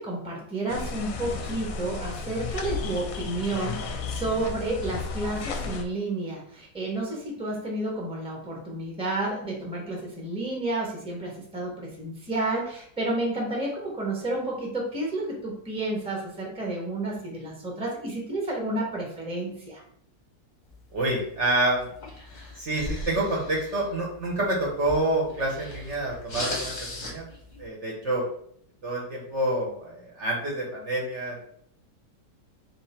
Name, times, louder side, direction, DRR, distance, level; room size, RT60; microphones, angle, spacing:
voice 1, 0.0-19.8, right 2 dB, 5° right, -2 dB, 1.0 m, -31 dB
sound 1, 0.7-5.8, left 4 dB, 70° left, 0.9 m, -33 dB
sound 2, 20.7-27.7, left 2 dB, 35° left, 0.9 m, -39 dB
voice 2, 20.9-21.9 22.6-27.2 27.6-28.2 28.8-31.5, right 1 dB, 50° right, -2 dB, 1.2 m, -27 dB
3.7 x 3.0 x 4.3 m, 0.64 s
omnidirectional pair, 1.7 m